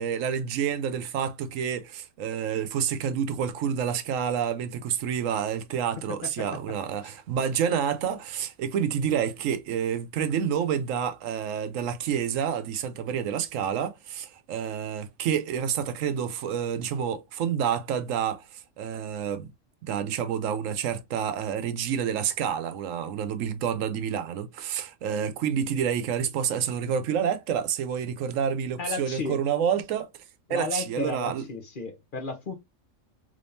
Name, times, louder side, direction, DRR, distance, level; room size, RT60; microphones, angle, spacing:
voice 1, 0.0-19.5 19.8-30.1 30.5-31.5, right 8 dB, 90° right, 1.0 m, -28 dB
voice 2, 28.8-29.4 30.5-32.5, left 3 dB, 45° left, 0.9 m, -33 dB
3.4 x 3.4 x 2.6 m
omnidirectional pair, 1.3 m